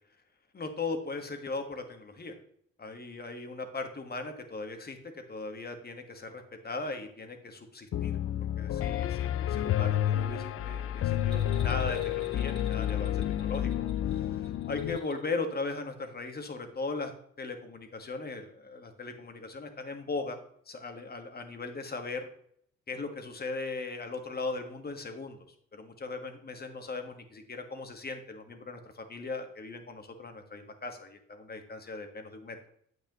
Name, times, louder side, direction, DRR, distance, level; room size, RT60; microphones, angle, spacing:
voice 1, 0.5-2.3 2.8-8.2 8.6-17.1 17.4-20.4 20.6-22.3 22.9-25.4 25.7-32.6, left 3 dB, 30° left, 6 dB, 1.6 m, -38 dB
Piano, 7.9-15.0, left 11 dB, 50° left, 0.4 m, -30 dB
Bell, 11.2-15.3 15.6-15.7, equal, 15° right, 3.1 m, -54 dB
9.4 x 8.1 x 3.1 m, 0.66 s
cardioid pair, 90°, 30 cm